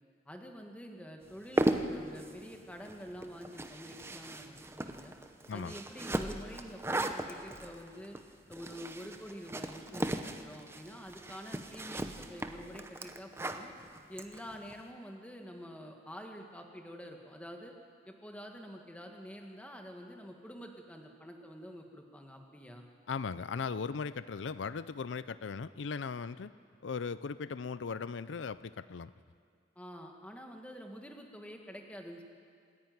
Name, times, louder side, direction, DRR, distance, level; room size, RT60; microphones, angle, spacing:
voice 1, 0.2-5.1 5.5-8.2 8.5-13.7 14.1-17.7 18.0-22.9 29.7-32.2, equal, 5° left, 2 dB, 1.8 m, -47 dB
sound 1, 1.3-14.8, right 1 dB, 15° right, 0.8 m, -37 dB
voice 2, 23.1-26.5 26.8-29.1, left 5 dB, 90° left, 15 dB, 0.5 m, -38 dB
26.5 x 10.5 x 9.4 m, 2.3 s
head